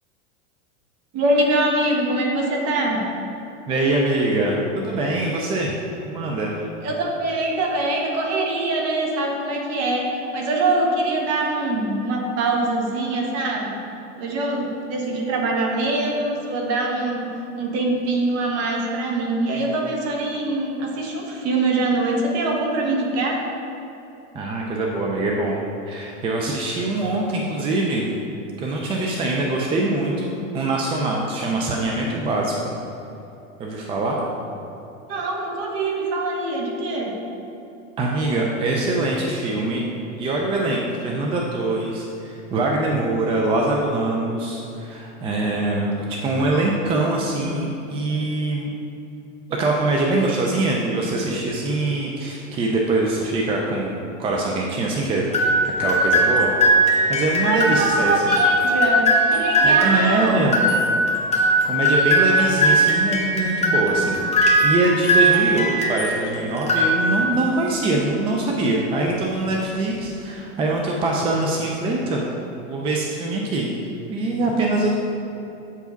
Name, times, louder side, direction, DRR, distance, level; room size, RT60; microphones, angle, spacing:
voice 1, 1.1-3.0 6.8-13.8 14.2-17.3 17.6-23.4 34.1-34.3 35.1-37.1 57.4-60.6, right 2 dB, 40° right, 0 dB, 1.3 m, -23 dB
voice 2, 3.7-5.7 6.1-6.5 24.3-28.1 28.6-32.7 33.6-34.2 38.0-39.9 40.2-48.7 49.5-55.3 55.8-56.5 57.1-58.3 59.6-60.6 61.6-64.3 64.6-72.2 72.7-73.7 74.1-75.0, right 2 dB, 15° right, -1 dB, 0.3 m, -23 dB
sound 1, 55.3-66.2 66.6-67.4, right 1 dB, 15° left, 1.0 m, -19 dB
8.1 x 4.9 x 3.9 m, 2.9 s
supercardioid pair, 130°, 39 cm